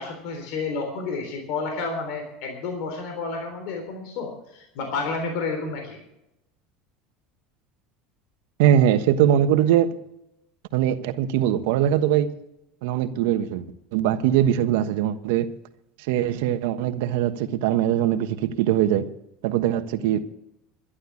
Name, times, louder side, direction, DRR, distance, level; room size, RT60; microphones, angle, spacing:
voice 1, 0.0-6.0, left 4 dB, 70° left, 4 dB, 3.6 m, -30 dB
voice 2, 8.6-9.9 10.7-12.3 12.8-13.6 13.9-15.5 16.1-19.0 19.4-20.2, right 11 dB, 75° right, 9 dB, 1.2 m, -21 dB
12.0 x 11.5 x 7.2 m, 0.85 s
supercardioid pair, 110°, 0 cm